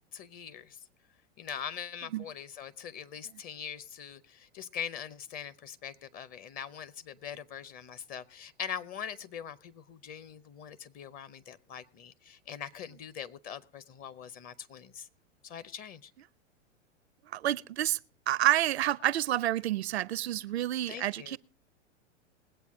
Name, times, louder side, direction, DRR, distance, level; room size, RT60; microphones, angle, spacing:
voice 1, 0.1-0.8 1.4-15.1 15.4-16.1 20.9-21.4, left 8 dB, 25° left, 0.6 m, -42 dB
voice 2, 17.3-18.0 18.3-21.4, right 13 dB, 60° right, 0.5 m, -29 dB
21.0 x 8.3 x 3.7 m
figure-of-eight pair, 100°, 37 cm